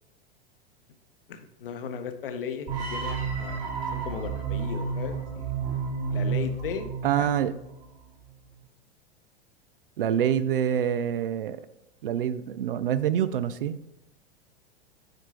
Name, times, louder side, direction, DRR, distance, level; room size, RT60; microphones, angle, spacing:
voice 1, 1.3-3.6 3.9-5.5 6.1-6.9 7.2-7.3, left 7 dB, 60° left, 8 dB, 0.9 m, -36 dB
sound 1, 2.7-7.8, right 5 dB, 40° right, 2.5 m, -31 dB
voice 2, 7.0-7.5 10.0-11.6 12.0-13.8, right 9 dB, 60° right, 14 dB, 0.5 m, -26 dB
9.1 x 4.4 x 3.3 m, 0.90 s
figure-of-eight pair, 95°, 32 cm